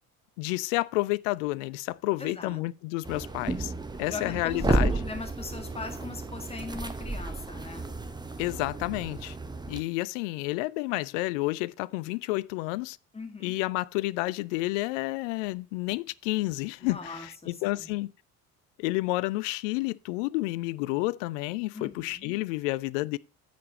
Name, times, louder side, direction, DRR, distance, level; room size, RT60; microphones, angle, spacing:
voice 1, 0.4-3.7 4.0-4.9 8.4-9.4 9.7-13.0 13.4-18.1 18.8-23.2, left 20 dB, 55° left, 0.5 m, -30 dB
voice 2, 2.2-2.6 4.1-7.9 13.1-13.5 16.8-18.0 21.7-22.4, left 3 dB, 15° left, 1.9 m, -40 dB
sound 1, 3.0-9.8, right 2 dB, 10° right, 1.0 m, -32 dB
10.5 x 6.7 x 4.1 m
figure-of-eight pair, 55°, 46 cm